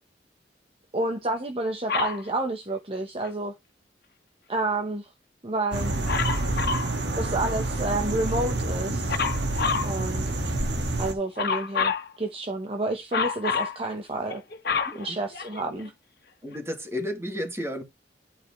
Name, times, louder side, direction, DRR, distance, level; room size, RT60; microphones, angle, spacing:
voice 1, 0.9-3.5 4.5-5.1 5.4-5.9 7.2-9.3 9.8-10.2 11.0-14.4 14.9-15.9, right 2 dB, 35° right, 1.0 m, -29 dB
Dog, 1.9-2.2 6.1-6.9 9.1-9.9 11.4-12.1 13.1-13.8 14.3-15.8 16.5-16.6, left 5 dB, 60° left, 1.6 m, -27 dB
sound 1, 5.7-11.1, right 2 dB, 90° right, 1.8 m, -28 dB
voice 2, 16.4-17.8, left 1 dB, 15° right, 2.1 m, -32 dB
11.0 x 5.0 x 3.2 m
head